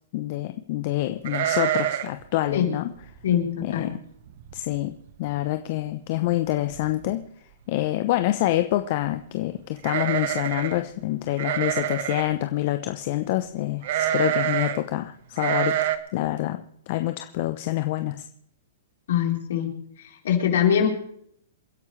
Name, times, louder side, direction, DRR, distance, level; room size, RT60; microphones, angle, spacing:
voice 1, 0.1-2.9 3.6-3.9 4.5-7.2 7.7-16.6 16.9-18.3, left 15 dB, 50° left, 8 dB, 0.9 m, -26 dB
sound 1, 1.2-2.2 2.5-2.6 3.0-3.3 3.9-4.0 4.3-4.8 5.1-5.2 6.3-6.4 6.7-7.1 9.8-10.8 11.4-12.3 13.8-14.8 15.4-16.0, right 12 dB, 60° right, 1.3 m, -26 dB
voice 2, 3.2-3.9 19.1-19.7 20.2-20.9, left 9 dB, 70° left, 1 dB, 4.2 m, -22 dB
28.0 x 11.0 x 3.4 m, 0.68 s
hypercardioid pair, 130°, 0 cm